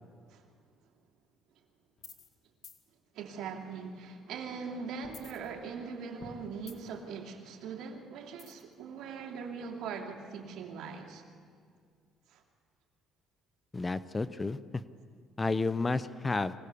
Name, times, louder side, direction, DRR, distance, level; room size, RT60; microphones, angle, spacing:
sound 1, 2.0-2.3 2.6-2.8 5.0-5.9 6.2-7.1 8.4-8.7, left 5 dB, 55° left, 2.0 m, -50 dB
voice 1, 3.1-11.2 12.3-12.4, right 5 dB, 75° right, 2.8 m, -41 dB
voice 2, 13.7-14.6 15.4-16.5, left 3 dB, 20° left, 0.7 m, -31 dB
25.0 x 17.5 x 6.9 m
cardioid pair, 100°, 0 cm